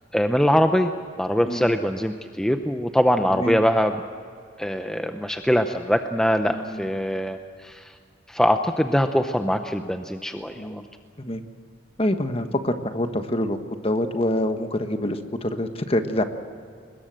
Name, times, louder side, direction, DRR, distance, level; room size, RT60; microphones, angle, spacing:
voice 1, 0.1-0.9 1.2-4.0 4.6-8.0 8.3-10.8, equal, 5° left, 6 dB, 0.7 m, -22 dB
voice 2, 6.5-6.9 9.8-9.9 10.3-10.9 11.2-11.4 12.0-13.6 13.8-16.2, left 1 dB, 30° left, 7 dB, 1.4 m, -26 dB
24.0 x 21.0 x 7.7 m, 2.3 s
head